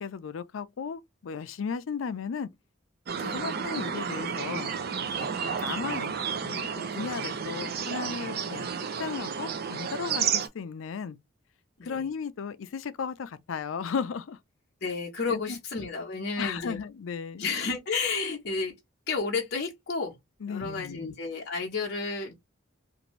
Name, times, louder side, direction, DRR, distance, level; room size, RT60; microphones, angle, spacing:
voice 1, 0.0-2.5 3.2-4.7 5.2-5.3 5.6-6.1 6.4-6.6 6.9-8.7 9.0-11.2 11.8-14.4 15.3-15.6 16.4-17.4 20.4-21.1, left 6 dB, 75° left, 0.4 m, -35 dB
sound 1, 3.1-10.5, right 6 dB, 50° right, 0.5 m, -32 dB
voice 2, 14.8-16.8 17.4-18.7 19.1-20.1 20.5-22.3, left 4 dB, 55° left, 0.7 m, -31 dB
2.6 x 2.6 x 3.0 m
head